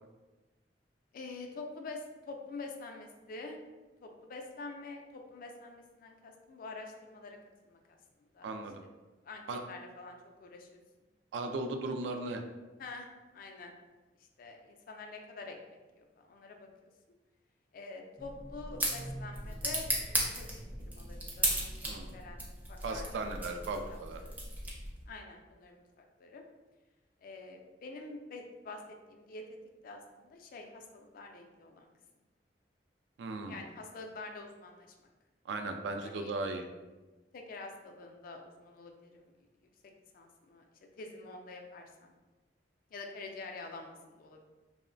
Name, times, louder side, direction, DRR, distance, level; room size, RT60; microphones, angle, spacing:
voice 1, 1.1-3.6 4.0-7.4 7.7-8.0 8.3-8.5 9.2-10.8 12.8-13.1 13.3-13.7 14.4-16.7 17.7-22.4 22.7-23.3 23.9-24.5 25.1-26.4 27.2-28.8 29.1-29.6 29.8-31.9 33.5-35.1 36.0-36.4 37.3-39.3 40.1-40.7 41.0-42.1 42.9-44.4, left 3 dB, 50° left, 3 dB, 0.3 m, -47 dB
voice 2, 8.4-8.8 9.5-9.6 11.3-12.4 21.8-22.2 22.8-24.2 33.2-33.6 35.5-36.7, right 2 dB, 90° right, 5 dB, 0.3 m, -37 dB
sound 1, 18.2-25.1, right 1 dB, 10° right, 0.4 m, -36 dB
2.9 x 2.0 x 2.5 m, 1.2 s
head